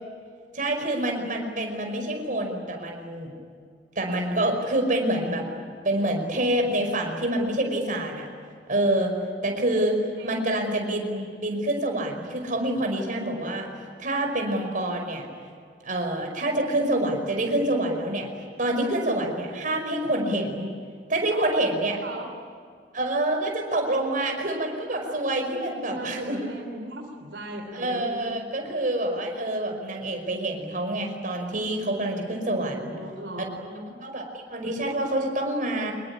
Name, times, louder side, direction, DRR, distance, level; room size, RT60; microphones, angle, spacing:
voice 1, 0.5-3.3 4.0-8.3 8.7-9.2 9.4-10.0 10.2-13.7 14.0-15.2 15.8-18.3 18.6-20.7 21.1-22.0 22.9-26.4 27.7-33.0 34.0-35.9, right 1 dB, 50° right, 3 dB, 5.3 m, -27 dB
voice 2, 21.3-22.3 25.4-28.3 32.6-33.9, right 1 dB, 80° right, 3 dB, 3.4 m, -38 dB
26.0 x 22.5 x 10.0 m, 2.1 s
head